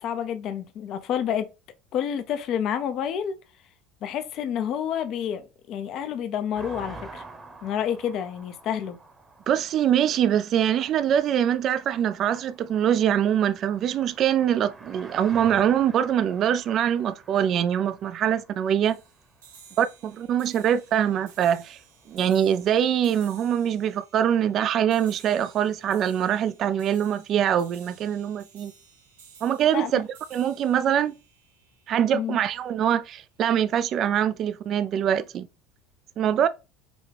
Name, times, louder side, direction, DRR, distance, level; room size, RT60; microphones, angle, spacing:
voice 1, 0.0-1.5 1.9-3.4 4.0-7.2 7.6-9.0 29.7-29.9 32.1-32.4, left 9 dB, 55° left, 0.5 m, -29 dB
sound 1, 6.5-19.6 20.4-20.5 20.7-22.9, right 3 dB, 20° right, 0.9 m, -48 dB
voice 2, 9.5-19.0 19.8-21.8 22.1-28.7 29.4-31.1 31.9-35.5 36.2-36.5, right 9 dB, 50° right, 0.3 m, -23 dB
sound 2, 18.8-32.3, right 5 dB, 90° right, 1.2 m, -54 dB
5.1 x 2.3 x 3.3 m
hypercardioid pair, 80°, 0 cm